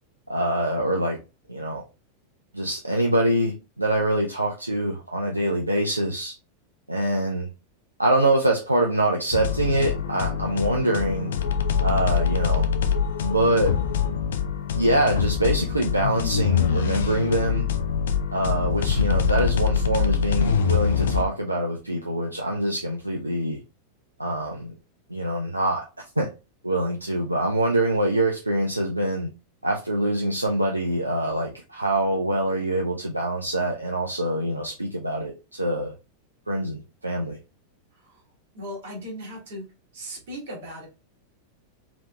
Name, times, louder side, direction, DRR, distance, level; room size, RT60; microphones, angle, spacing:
voice 1, 0.3-1.2 1.5-1.8 2.5-6.3 6.9-7.5 8.0-11.3 11.8-12.7 13.2-13.8 14.7-17.7 18.3-23.6 24.2-24.7 25.1-26.3 26.6-29.3 29.6-35.9 36.5-37.4, right 1 dB, 85° right, 0 dB, 0.4 m, -24 dB
sound 1, 9.3-21.2, left 7 dB, 60° left, 0.4 m, -24 dB
voice 2, 37.9-38.2 38.5-39.6 39.9-40.9, equal, 55° right, 0 dB, 1.4 m, -37 dB
3.3 x 2.9 x 2.3 m, 0.29 s
figure-of-eight pair, 90°, 0 cm